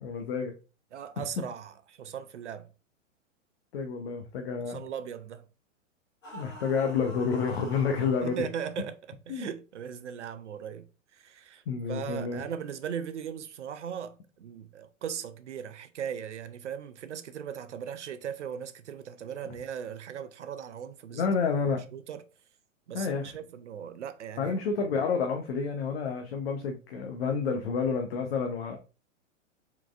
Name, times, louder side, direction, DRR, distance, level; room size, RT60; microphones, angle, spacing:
voice 1, 0.0-0.5 1.2-1.3 3.7-4.8 6.3-8.4 9.3-9.5 11.7-12.4 21.1-21.8 22.9-23.3 24.4-28.8, left 5 dB, 50° left, 0.9 m, -29 dB
voice 2, 0.9-2.7 4.7-5.5 8.2-11.6 11.9-21.3 21.9-22.2 22.9-24.5, right 8 dB, 65° right, 0.7 m, -38 dB
sound 1, 6.2-8.4, equal, 70° left, 1.8 m, -46 dB
4.6 x 4.1 x 2.5 m
figure-of-eight pair, 105°, 39 cm